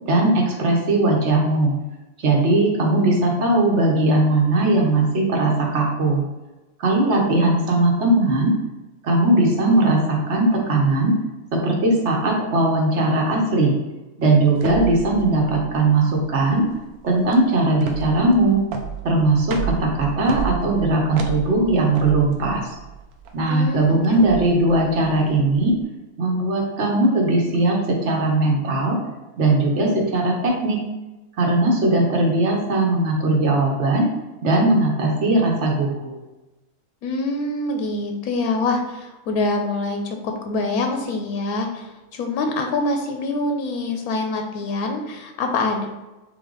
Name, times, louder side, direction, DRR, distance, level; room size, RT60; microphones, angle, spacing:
voice 1, 0.0-1.7 2.2-6.2 6.8-8.5 9.0-11.1 11.5-13.8 14.2-16.6 17.0-18.6 19.0-22.7 23.3-25.7 26.2-29.0 29.4-30.8 31.4-34.1 34.4-36.2, right 2 dB, 55° right, 0 dB, 1.2 m, -19 dB
sound 1, 14.6-25.8, right 7 dB, 85° right, 1.1 m, -32 dB
voice 2, 23.5-24.5 37.0-45.9, left 2 dB, 85° left, 3 dB, 1.2 m, -25 dB
4.0 x 3.5 x 3.8 m, 1.1 s
omnidirectional pair, 1.5 m